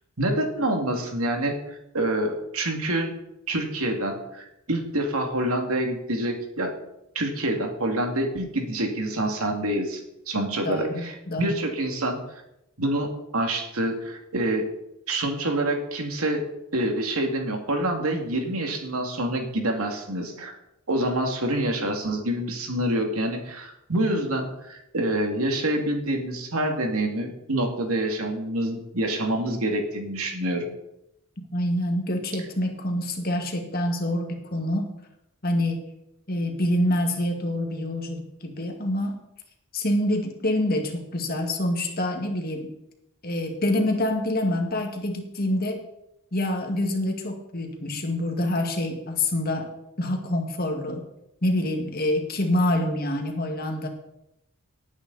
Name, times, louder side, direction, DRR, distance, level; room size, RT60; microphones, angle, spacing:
voice 1, 0.2-3.1 3.5-6.7 7.1-12.2 12.8-14.7 15.1-16.4 16.7-20.5 20.9-30.7, right 1 dB, 85° right, 3 dB, 2.5 m, -27 dB
voice 2, 10.6-11.6 31.4-34.9 35.4-35.9 36.3-39.2 39.7-42.7 43.2-45.8 46.3-49.7 50.0-51.1 51.4-53.9, left 1 dB, 45° left, 3 dB, 2.0 m, -26 dB
18.0 x 9.1 x 4.2 m, 0.84 s
head